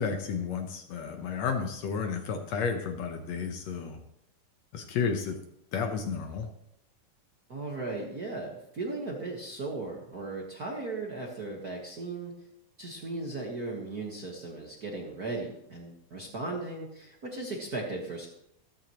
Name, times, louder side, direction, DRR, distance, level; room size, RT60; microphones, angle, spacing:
voice 1, 0.0-4.0 4.7-5.4 5.7-6.5, left 5 dB, 70° left, 5 dB, 1.9 m, -32 dB
voice 2, 7.5-12.3 12.8-18.3, right 3 dB, 45° right, -1 dB, 1.3 m, -37 dB
14.0 x 13.5 x 3.0 m, 0.76 s
omnidirectional pair, 3.6 m